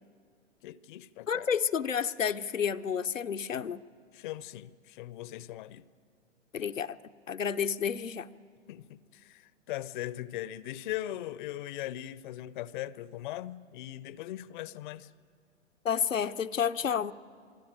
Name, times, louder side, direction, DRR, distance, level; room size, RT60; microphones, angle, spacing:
voice 1, 0.6-1.5 4.1-5.9 8.7-15.1, left 13 dB, 40° left, 0.6 m, -40 dB
voice 2, 1.3-3.8 6.5-7.0 7.3-8.3 15.8-17.1, left 7 dB, 85° left, 0.7 m, -30 dB
27.0 x 20.5 x 8.9 m
figure-of-eight pair, 110°, 38 cm